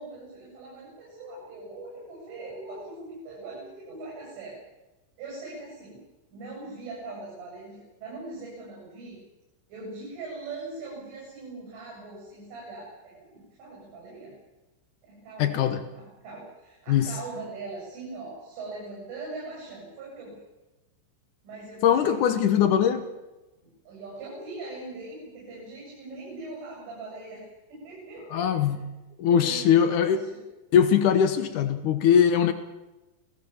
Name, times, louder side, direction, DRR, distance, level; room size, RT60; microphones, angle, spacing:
voice 1, 0.0-4.6 5.2-6.0 6.3-9.2 9.7-14.3 15.0-15.6 15.9-20.3 21.4-22.8 23.9-28.7 29.3-30.4, right 3 dB, 80° right, -3 dB, 10.5 m, -41 dB
voice 2, 15.4-15.8 16.9-17.1 21.8-23.1 28.3-28.8 29.2-30.2 30.7-32.5, left 8 dB, 85° left, 10 dB, 1.7 m, -21 dB
29.0 x 19.0 x 7.3 m, 1.1 s
omnidirectional pair, 5.5 m